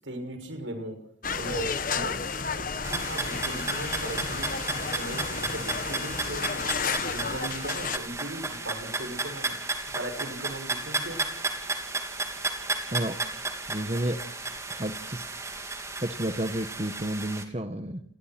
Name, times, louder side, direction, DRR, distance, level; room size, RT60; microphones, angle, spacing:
voice 1, 0.0-1.0 1.3-2.2 2.6-4.5 4.9-6.7 7.1-9.5 10.0-11.2, right 1 dB, 75° right, 7 dB, 6.3 m, -38 dB
sound 1, 1.2-8.0, left 5 dB, 45° left, 1.3 m, -32 dB
sound 2, 2.8-17.4, right 3 dB, 15° right, 3.3 m, -33 dB
voice 2, 13.7-14.2 14.7-15.2 15.6-15.7 16.0-18.0, right 1 dB, 30° right, 8 dB, 1.4 m, -31 dB
29.5 x 20.5 x 6.1 m, 0.64 s
head